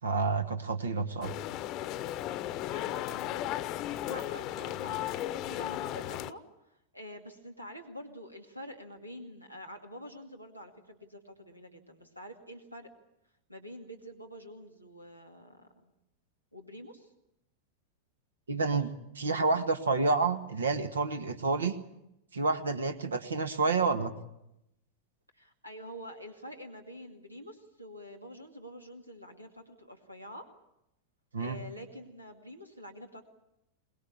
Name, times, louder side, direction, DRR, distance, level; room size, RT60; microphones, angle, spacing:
voice 1, 0.0-1.3 18.5-18.9 19.2-21.8 22.3-24.1 31.3-31.6, right 4 dB, 70° right, 8 dB, 1.7 m, -29 dB
sound 1, 1.2-6.3, left 13 dB, 40° left, 0.9 m, -35 dB
voice 2, 2.7-12.9 13.5-15.9 16.5-17.1 25.3-30.4 31.4-33.2, equal, 90° right, 5 dB, 2.4 m, -47 dB
23.5 x 21.0 x 8.6 m, 0.84 s
figure-of-eight pair, 90°, 0 cm